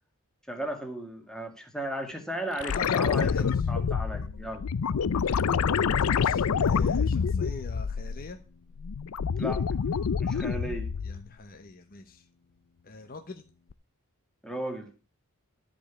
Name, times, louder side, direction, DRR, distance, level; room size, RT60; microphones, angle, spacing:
voice 1, 0.5-4.6 9.4-9.7 10.2-10.9 14.4-14.9, right 1 dB, 5° left, 3 dB, 1.9 m, -35 dB
sound 1, 2.6-8.4 8.8-11.3 13.7-13.8, left 6 dB, 85° left, 0.5 m, -27 dB
voice 2, 2.7-3.7 6.0-8.4 11.0-12.3 12.8-13.4, left 3 dB, 40° left, 6 dB, 0.9 m, -43 dB
13.0 x 5.2 x 7.0 m, 0.34 s
head